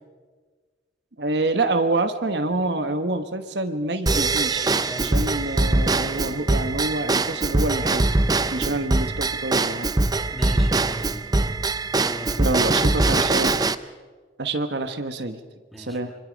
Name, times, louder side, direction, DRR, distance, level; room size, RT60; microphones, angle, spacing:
voice 1, 1.2-8.1 8.5-10.0 12.4-13.6 14.4-15.4 15.8-16.1, right 2 dB, 65° right, 7 dB, 1.2 m, -27 dB
Drum kit / Drum / Bell, 4.1-13.7, right 2 dB, 20° right, 0.6 m, -22 dB
voice 2, 4.6-5.2 8.6-8.7 10.3-11.1 12.0-12.6 12.9-13.5 15.7-16.0, equal, ahead, 2 dB, 2.4 m, -37 dB
26.0 x 25.0 x 5.2 m, 1.4 s
head